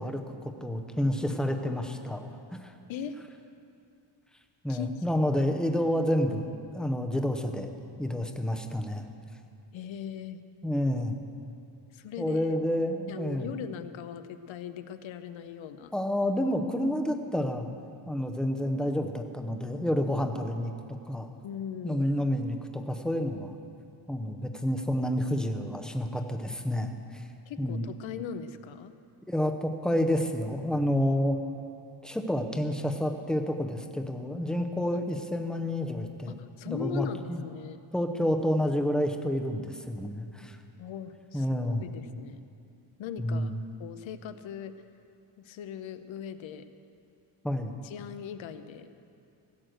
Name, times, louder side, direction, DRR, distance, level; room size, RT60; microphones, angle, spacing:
voice 1, 0.0-2.7 4.6-7.7 8.0-9.1 10.6-11.2 12.2-13.5 15.9-17.7 18.1-20.7 21.1-21.3 21.8-23.6 24.1-27.2 27.6-27.8 29.3-31.4 32.0-36.4 36.7-37.4 37.9-40.6 41.3-41.9 43.2-43.6 47.4-47.8, equal, ahead, 4 dB, 0.6 m, -29 dB
voice 2, 9.7-10.4 11.9-12.5 13.1-15.9 21.4-22.1 27.5-28.9 29.9-30.0 36.3-37.8 40.8-42.4 43.0-44.7 45.4-46.7 47.8-48.9, left 8 dB, 70° left, 10 dB, 0.8 m, -39 dB
17.0 x 6.4 x 7.8 m, 2.5 s
cardioid pair, 155°, 48 cm